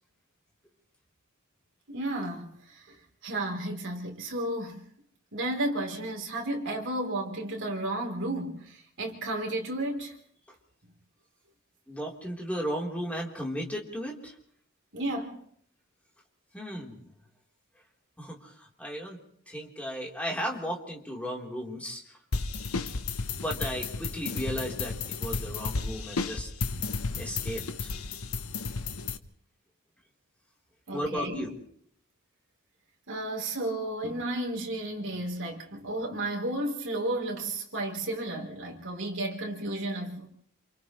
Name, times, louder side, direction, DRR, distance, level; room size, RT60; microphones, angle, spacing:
voice 1, 1.9-3.0 3.2-4.8 5.3-10.2 14.9-15.4 30.9-31.5 33.1-40.3, right 1 dB, 60° right, 3.7 m, -33 dB
voice 2, 11.9-14.4 16.5-17.0 18.2-19.2 19.5-22.2 23.4-26.5 27.2-27.9 30.9-31.6, equal, 5° left, 3.8 m, -35 dB
sound 1, 22.3-29.2, left 4 dB, 75° left, 1.0 m, -33 dB
29.5 x 28.0 x 3.2 m
head